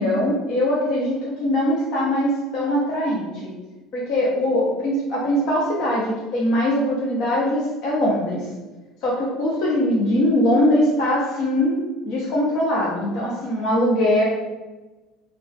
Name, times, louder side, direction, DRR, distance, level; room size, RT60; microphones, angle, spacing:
voice 1, 0.0-3.5 3.9-8.5 9.0-11.8 12.0-14.2, left 1 dB, 60° left, -5 dB, 0.7 m, -21 dB
2.4 x 2.3 x 3.9 m, 1.2 s
cardioid pair, 120°, 0 cm